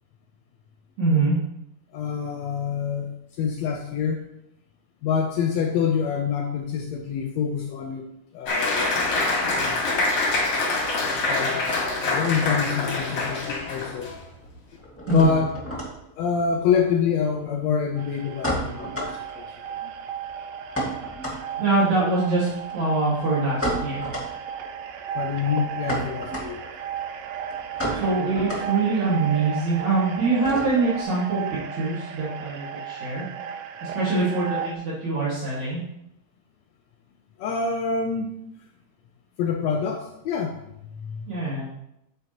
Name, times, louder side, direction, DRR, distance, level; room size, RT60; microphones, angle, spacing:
voice 1, 1.0-1.3 15.1-15.3 21.6-24.0 27.9-31.4 31.8-33.2 33.8-35.8 41.3-41.6, right 3 dB, 65° right, -8 dB, 3.3 m, -24 dB
voice 2, 1.9-4.2 5.0-8.0 8.3-9.2 11.2-14.1 15.1-15.5 16.2-19.4 19.8-19.9 25.1-26.6 37.4-38.3 39.4-40.6 41.0-41.3, left 6 dB, 75° left, 3 dB, 1.6 m, -26 dB
Applause, 8.5-14.2, left 2 dB, 50° left, 2.7 m, -25 dB
sound 1, 13.6-13.8 14.0-31.0, equal, 5° left, 1.1 m, -34 dB
sound 2, 18.0-34.7, right 8 dB, 80° right, 1.4 m, -34 dB
9.1 x 8.1 x 3.0 m, 0.82 s
omnidirectional pair, 3.6 m